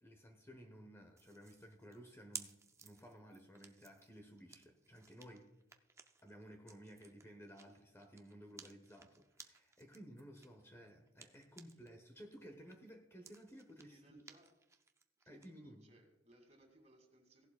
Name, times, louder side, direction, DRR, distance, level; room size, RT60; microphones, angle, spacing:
voice 1, 0.0-5.5 6.2-14.2 15.3-15.8, equal, 15° left, 5 dB, 1.0 m, -56 dB
sound 1, 1.2-12.0 12.3-15.5, right 5 dB, 15° right, 0.5 m, -57 dB
voice 2, 13.8-14.6 15.2-17.5, right 1 dB, 35° right, 3 dB, 2.4 m, -67 dB
16.5 x 11.5 x 2.3 m, 0.92 s
head